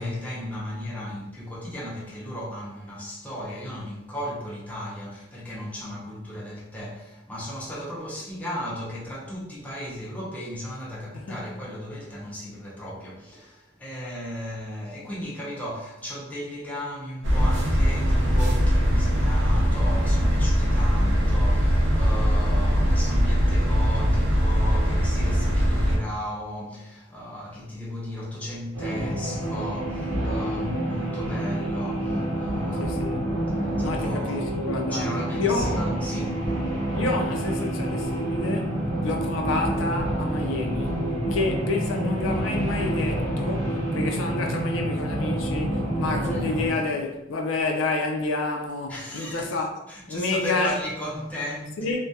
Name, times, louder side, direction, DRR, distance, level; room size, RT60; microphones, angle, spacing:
voice 1, 0.0-33.2 33.4-34.6 34.9-36.5 46.2-46.5 48.9-49.5 49.9-52.0, left 1 dB, 5° left, 0.5 m, -35 dB
sound 1, 17.2-26.0, equal, 70° right, 0.5 m, -21 dB
sound 2, 28.7-46.7, right 1 dB, 90° right, 0.8 m, -28 dB
voice 2, 32.8-33.3 33.8-35.7 36.9-49.7 50.1-50.8 51.8-52.0, left 3 dB, 80° left, 0.4 m, -29 dB
2.2 x 2.1 x 2.6 m
head